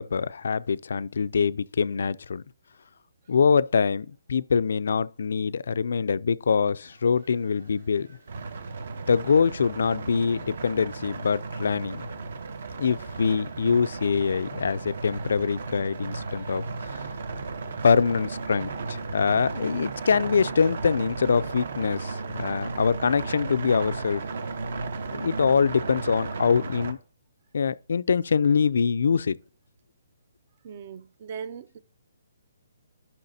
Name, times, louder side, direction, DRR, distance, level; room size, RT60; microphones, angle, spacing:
voice 1, 0.0-2.4 3.3-8.1 9.1-12.1 12.8-16.6 17.8-24.2 25.1-27.0 27.5-29.4, left 6 dB, 65° left, 0.3 m, -24 dB
sound 1, 6.8-19.8, right 2 dB, 85° right, 4.2 m, -57 dB
sound 2, 8.3-26.9, right 4 dB, 55° right, 0.9 m, -35 dB
sound 3, 12.7-21.8, right 4 dB, 15° right, 0.9 m, -53 dB
voice 2, 30.6-31.8, right 7 dB, 35° right, 0.4 m, -39 dB
12.0 x 5.7 x 2.7 m
hypercardioid pair, 170°, 0 cm